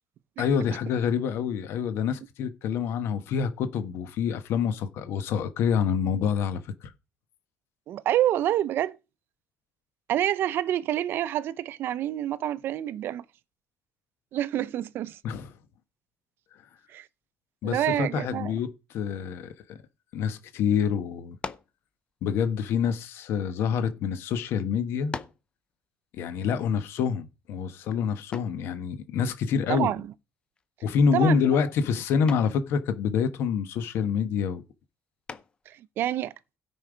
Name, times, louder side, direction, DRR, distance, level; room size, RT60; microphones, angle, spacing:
voice 1, 0.4-6.9 15.2-15.5 17.6-19.8 20.1-21.4 22.2-25.2 26.1-29.9 30.8-34.6, left 7 dB, 60° left, 1.3 m, -27 dB
voice 2, 7.9-9.0 10.1-13.2 14.3-15.2 16.9-17.1 17.6-18.5 29.7-30.1 31.1-31.4 35.7-36.3, right 12 dB, 50° right, 0.6 m, -27 dB
sound 1, 21.4-21.8 22.7-23.9 24.6-24.7 25.1-25.5 28.3-28.7 30.6-30.9 31.3-31.7 32.3-32.6 35.3-35.7, left 4 dB, 20° left, 0.6 m, -40 dB
16.5 x 5.5 x 5.0 m
cardioid pair, 180°, 5 cm